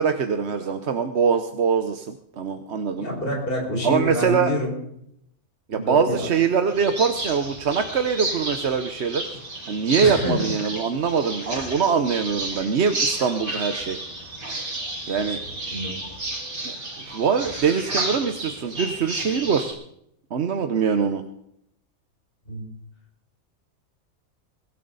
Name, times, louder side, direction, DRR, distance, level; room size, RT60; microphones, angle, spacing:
voice 1, 0.0-3.1 3.8-4.5 5.7-9.3 9.7-14.0 15.1-15.4 16.6-16.8 17.1-19.8 20.3-21.2, right 6 dB, 55° right, 7 dB, 1.1 m, -23 dB
voice 2, 3.0-4.7 5.7-6.2 10.0-10.5 15.7-15.9 17.6-17.7 22.5-22.6, left 1 dB, 40° left, -2 dB, 5.8 m, -27 dB
sound 1, 6.7-19.7, right 2 dB, 85° right, 3.7 m, -32 dB
23.0 x 12.5 x 4.0 m, 0.75 s
omnidirectional pair, 1.4 m